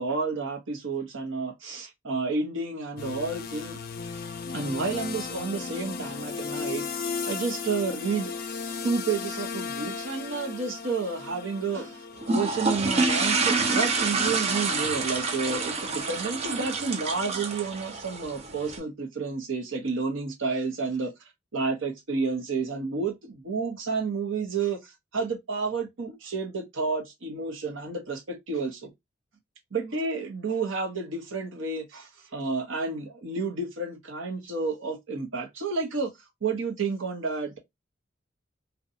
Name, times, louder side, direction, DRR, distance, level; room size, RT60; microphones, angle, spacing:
voice 1, 0.0-3.8 4.5-8.3 8.8-21.1 21.5-24.8 25.1-28.9 29.7-36.1 36.4-37.6, right 4 dB, 85° right, 0.8 m, -30 dB
sound 1, 3.0-15.5, left 5 dB, 50° left, 0.4 m, -36 dB
sound 2, 12.2-18.8, right 3 dB, 30° right, 0.4 m, -27 dB
2.7 x 2.2 x 2.6 m
head